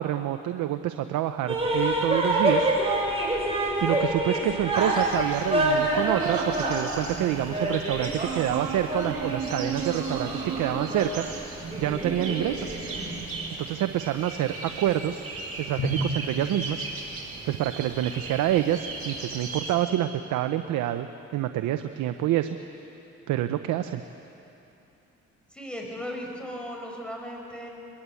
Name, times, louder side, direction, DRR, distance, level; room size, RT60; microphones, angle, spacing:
voice 1, 0.0-2.7 3.8-11.2 11.8-12.8 13.6-15.2 15.6-16.8 17.5-21.1 21.3-22.6 23.3-24.0, right 12 dB, 85° right, 9 dB, 0.8 m, -27 dB
sound 1, 1.5-13.3, right 2 dB, 20° right, 6.0 m, -27 dB
sound 2, 4.7-19.7, right 3 dB, 50° right, 5.1 m, -38 dB
Drum, 15.8-17.5, equal, 80° left, 5.4 m, -32 dB
voice 2, 25.5-27.7, equal, 5° left, 0 dB, 5.8 m, -36 dB
22.5 x 22.0 x 8.4 m, 2.9 s
cardioid pair, 90°, 30 cm